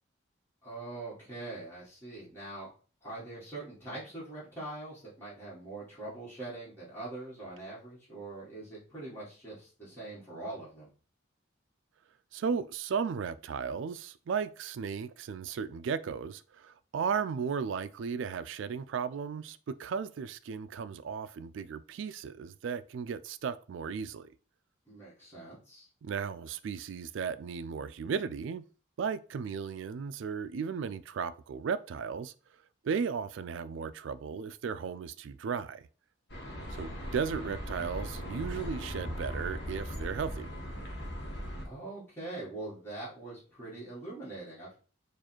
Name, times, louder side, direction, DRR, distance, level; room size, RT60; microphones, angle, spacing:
voice 1, 0.6-2.7 3.0-10.9 24.9-25.9 41.6-44.8, right 2 dB, 10° left, 1.7 m, -43 dB
voice 2, 12.3-24.3 26.0-28.6 29.0-32.3 32.8-35.9 36.7-40.5, right 6 dB, 70° right, 0.3 m, -35 dB
sound 1, 36.3-41.7, equal, 55° left, 1.1 m, -39 dB
4.6 x 2.5 x 4.4 m
head